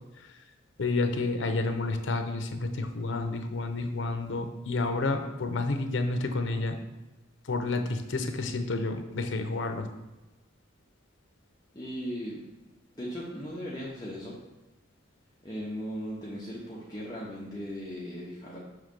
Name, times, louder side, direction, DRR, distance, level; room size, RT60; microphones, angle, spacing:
voice 1, 0.8-6.8 7.4-9.9, left 3 dB, 70° left, 6 dB, 0.6 m, -30 dB
voice 2, 11.7-12.4 12.9-14.3 15.4-18.6, equal, 20° left, -7 dB, 0.9 m, -37 dB
6.4 x 3.1 x 5.2 m, 1.1 s
head